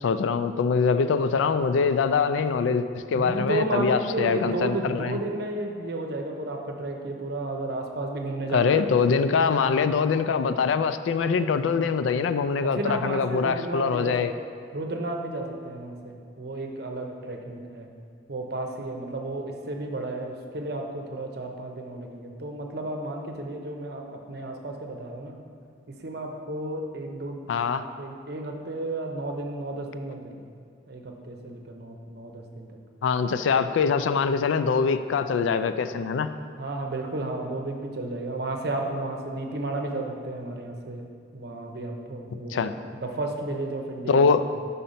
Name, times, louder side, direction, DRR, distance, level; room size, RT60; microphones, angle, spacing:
voice 1, 0.0-5.2 8.5-14.3 27.5-27.8 33.0-36.3 42.5-42.7 44.1-44.4, left 5 dB, 90° left, 11 dB, 0.3 m, -23 dB
voice 2, 3.1-8.8 12.6-14.2 14.7-17.9 18.3-25.4 25.9-30.4 30.9-32.8 36.6-44.3, right 2 dB, 60° right, 3 dB, 0.7 m, -33 dB
5.6 x 5.1 x 5.6 m, 2.2 s
head